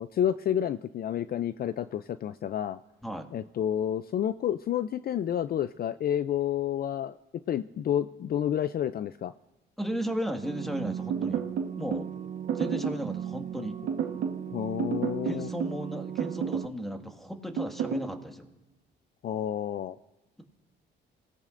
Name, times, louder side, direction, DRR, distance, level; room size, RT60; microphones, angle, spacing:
voice 1, 0.0-2.8 3.3-7.1 7.5-9.3 14.5-15.5 19.2-20.0, left 10 dB, 50° left, 13 dB, 0.4 m, -30 dB
voice 2, 9.8-11.4 11.8-12.1 12.5-13.8 15.2-18.5, equal, ahead, 4 dB, 1.8 m, -35 dB
sound 1, 10.4-16.7, right 9 dB, 40° right, 0.6 m, -38 dB
sound 2, 11.1-12.1 12.5-13.1 13.9-14.4 14.8-15.8 16.2-16.7 17.6-18.1, right 7 dB, 85° right, 1.3 m, -31 dB
26.5 x 17.5 x 2.6 m, 1.1 s
cardioid pair, 90°, 20 cm